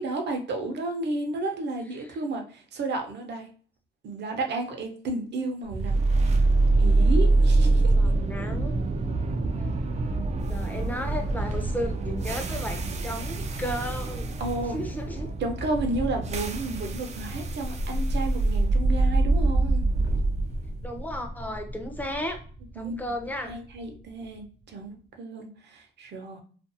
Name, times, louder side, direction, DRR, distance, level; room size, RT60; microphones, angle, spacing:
voice 1, 0.0-3.5 4.0-6.0 6.8-7.9 14.4-14.8 15.4-19.8 22.8-23.0 23.4-26.4, right 2 dB, 60° right, 4 dB, 0.7 m, -32 dB
sound 1, 5.7-23.8, right 2 dB, 35° right, 0.4 m, -25 dB
voice 2, 7.7-8.7 10.5-14.4 14.7-15.3 20.8-22.4 22.7-23.6, equal, 10° left, 4 dB, 0.6 m, -34 dB
2.5 x 2.3 x 2.6 m, 0.42 s
cardioid pair, 90°, 20 cm